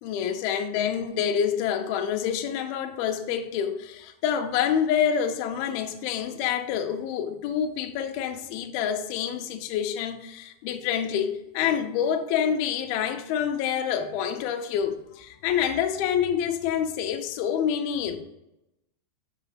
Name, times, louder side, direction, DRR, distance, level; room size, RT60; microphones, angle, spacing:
voice 1, 0.0-18.2, left 8 dB, 85° left, 2.2 m, -27 dB
5.8 x 5.6 x 5.0 m
omnidirectional pair, 5.2 m